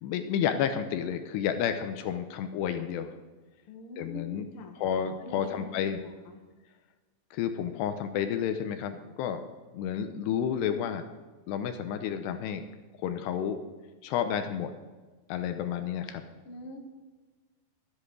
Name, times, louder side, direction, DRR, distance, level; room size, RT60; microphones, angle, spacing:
voice 1, 0.0-3.1 4.0-4.5 4.8-6.0 7.3-9.4 9.7-11.1 11.5-12.7 13.0-13.6 14.0-14.7 15.3-16.2, left 8 dB, 80° left, 8 dB, 2.7 m, -31 dB
voice 2, 3.7-4.7 5.2-5.9 6.2-6.4 16.4-16.8, left 2 dB, 60° left, 2 dB, 1.4 m, -43 dB
13.0 x 9.9 x 4.8 m, 1.3 s
omnidirectional pair, 5.1 m